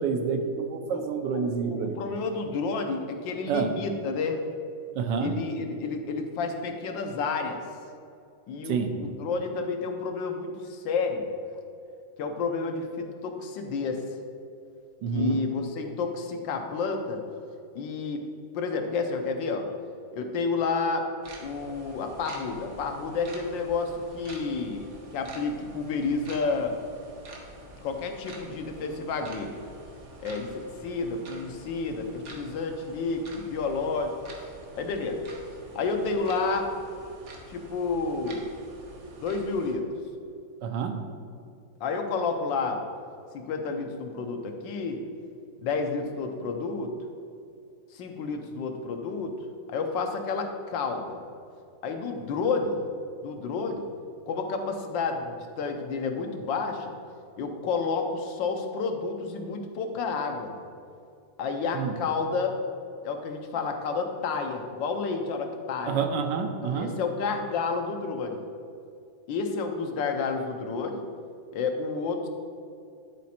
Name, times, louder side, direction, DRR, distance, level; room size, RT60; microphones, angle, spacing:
voice 1, 0.0-2.0 3.5-3.8 4.9-5.3 8.7-9.0 15.0-15.4 40.6-41.0 61.7-62.0 65.9-67.0, right 6 dB, 75° right, 6 dB, 1.3 m, -28 dB
voice 2, 1.3-4.5 5.2-7.6 8.5-11.3 12.2-14.1 15.1-17.2 17.7-18.3 18.5-19.7 20.1-21.1 21.4-24.9 25.1-26.8 27.8-29.7 30.2-34.5 34.8-35.2 35.7-36.7 37.5-38.5 39.2-39.9 41.8-42.8 43.3-45.0 45.6-46.9 47.9-49.4 49.7-51.2 51.8-52.8 53.2-53.8 54.3-56.9 57.4-60.5 61.4-62.6 63.0-66.0 66.6-68.4 69.3-71.0 71.5-72.3, left 4 dB, 80° left, 4 dB, 1.5 m, -30 dB
sound 1, 21.2-39.7, right 2 dB, 50° right, 1.1 m, -47 dB
11.0 x 4.1 x 4.3 m, 2.4 s
omnidirectional pair, 2.0 m